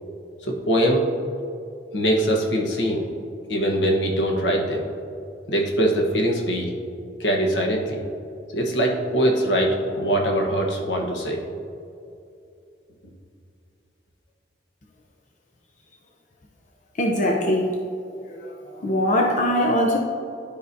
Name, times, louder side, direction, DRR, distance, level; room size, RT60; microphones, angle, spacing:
voice 1, 0.5-1.1 1.9-3.0 3.5-4.9 5.5-6.7 7.2-8.0 8.5-11.4, right 1 dB, 85° left, 0 dB, 1.2 m, -22 dB
voice 2, 17.0-17.7 18.2-20.0, equal, 45° left, 0 dB, 0.6 m, -22 dB
12.0 x 4.9 x 2.7 m, 2.5 s
head